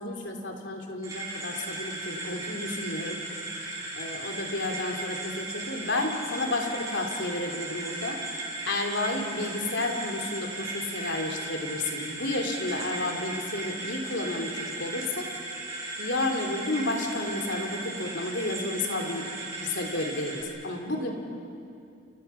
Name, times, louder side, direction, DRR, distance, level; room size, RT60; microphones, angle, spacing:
voice 1, 0.0-3.2 3.5-8.2 8.6-15.3 16.0-19.3 19.6-21.1, left 2 dB, 70° left, 3 dB, 3.3 m, -31 dB
sound 1, 1.0-20.4, right 2 dB, 15° right, 6.6 m, -36 dB
29.5 x 29.5 x 5.9 m, 2.6 s
head